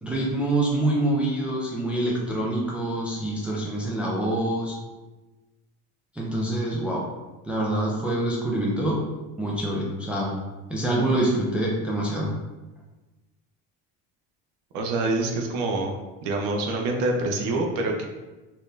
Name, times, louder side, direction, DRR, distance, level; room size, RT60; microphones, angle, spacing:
voice 1, 0.0-4.8 6.2-7.1 7.4-9.0 9.4-10.3 10.7-12.3, right 1 dB, 5° right, -4 dB, 0.3 m, -25 dB
voice 2, 14.7-15.9 16.2-18.0, right 2 dB, 75° right, 2 dB, 0.7 m, -26 dB
4.3 x 2.5 x 3.2 m, 1.1 s
cardioid pair, 165°, 34 cm